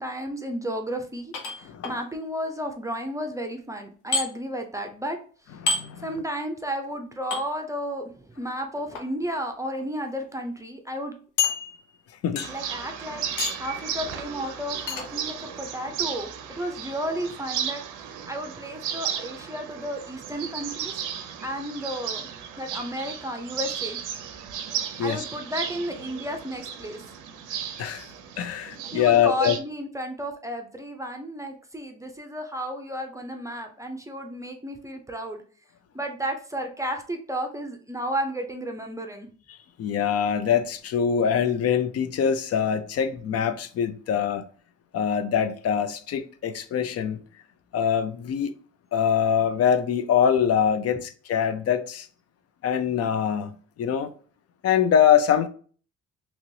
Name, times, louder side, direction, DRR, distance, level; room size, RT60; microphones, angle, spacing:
voice 1, 0.0-5.2 6.0-11.1 12.5-13.2 13.6-17.8 18.3-21.0 21.4-22.3 22.6-24.0 25.0-27.0 28.9-35.4 35.9-39.3, equal, 10° right, 0.5 m, -33 dB
sound 1, 1.3-2.0 4.1-4.3 5.7-5.8 7.3-7.4 8.8-9.0 9.8-9.9 10.2-10.3 11.4-12.0 12.4-12.7 13.4-13.7 14.9-15.1, left 4 dB, 85° left, 0.8 m, -28 dB
voice 2, 5.6-6.1 12.2-12.5 25.0-25.2 27.8-29.6 39.8-44.4 44.9-47.2 47.7-48.5 48.9-52.1 52.6-54.1 54.6-55.5, left 8 dB, 55° left, 0.5 m, -24 dB
sound 2, 12.4-29.6, right 8 dB, 90° right, 0.5 m, -35 dB
3.0 x 2.9 x 2.7 m
cardioid pair, 90°, 30 cm